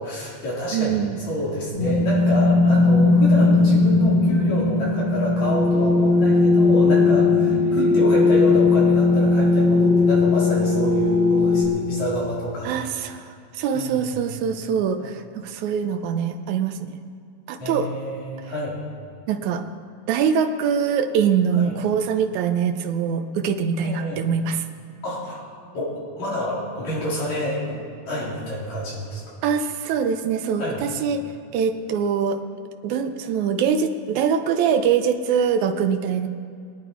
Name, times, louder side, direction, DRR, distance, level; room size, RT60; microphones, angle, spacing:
voice 1, 0.0-12.7 13.7-14.2 15.0-15.1 17.6-18.8 21.5-21.8 23.8-24.2 25.0-25.5 25.7-27.8 28.1-29.2 30.6-30.8, left 1 dB, 50° left, -6 dB, 4.9 m, -28 dB
voice 2, 0.7-1.2 7.5-8.0 12.6-13.3 13.5-17.0 17.5-17.9 19.3-19.6 20.1-24.6 29.4-31.2 31.5-32.4 32.8-36.3, right 7 dB, 80° right, 6 dB, 1.7 m, -23 dB
sound 1, 1.7-11.6, left 3 dB, 25° right, 2.3 m, -18 dB
22.5 x 9.3 x 4.6 m, 2.4 s
omnidirectional pair, 4.2 m